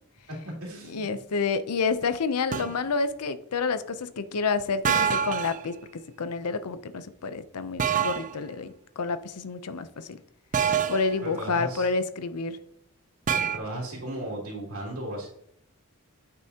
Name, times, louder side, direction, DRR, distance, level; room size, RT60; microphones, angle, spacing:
voice 1, 0.3-1.2 11.2-11.9 13.5-15.3, right 1 dB, 70° right, -4 dB, 3.1 m, -36 dB
voice 2, 0.9-5.8 6.2-10.2 10.9-12.6, left 4 dB, 85° left, 12 dB, 0.6 m, -29 dB
sound 1, 2.5-2.8 4.8-5.6 7.8-8.3 10.5-11.1 13.3-13.6, right 7 dB, 35° right, 0.5 m, -25 dB
9.0 x 6.3 x 2.8 m, 0.71 s
head